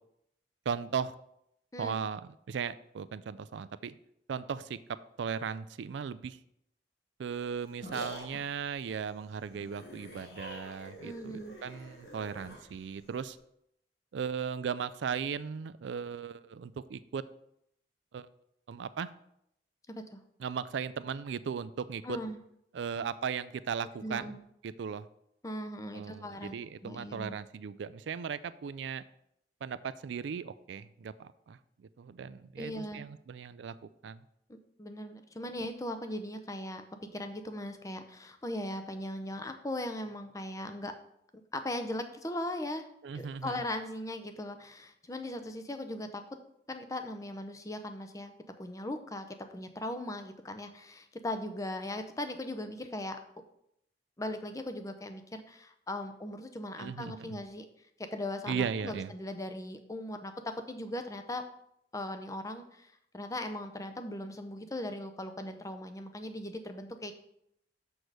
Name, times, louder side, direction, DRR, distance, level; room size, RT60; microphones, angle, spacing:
voice 1, 0.7-1.1 1.8-3.9 4.3-4.8 5.2-6.4 7.2-13.4 14.1-17.2 18.1-18.3 18.7-19.1 20.4-22.2 22.7-24.3 24.6-25.1 25.9-29.0 29.6-33.7 34.0-34.2 43.0-43.6 56.8-57.4 58.5-59.1, right 6 dB, 80° right, 14 dB, 0.4 m, -37 dB
sound 1, 7.3-13.4, equal, 65° left, 1.8 m, -47 dB
voice 2, 11.0-11.5 19.9-20.2 22.0-22.4 24.0-24.4 25.4-26.5 26.8-27.4 32.6-33.1 34.5-36.8 37.1-40.9 41.5-42.9 43.1-46.4 46.7-48.3 48.6-53.2 54.2-57.6 58.1-61.4 61.9-67.1, left 1 dB, 20° left, 7 dB, 0.6 m, -39 dB
6.6 x 6.2 x 4.8 m, 0.76 s
head